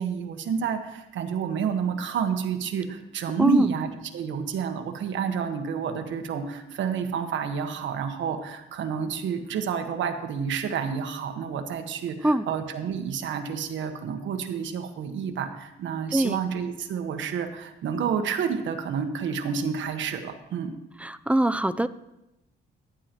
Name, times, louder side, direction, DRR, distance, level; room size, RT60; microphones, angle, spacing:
voice 1, 0.0-20.7, right 7 dB, 75° right, 6 dB, 1.3 m, -29 dB
voice 2, 21.0-21.9, right 1 dB, 5° right, 14 dB, 0.4 m, -22 dB
15.0 x 10.5 x 3.0 m, 0.91 s
cardioid pair, 90°, 20 cm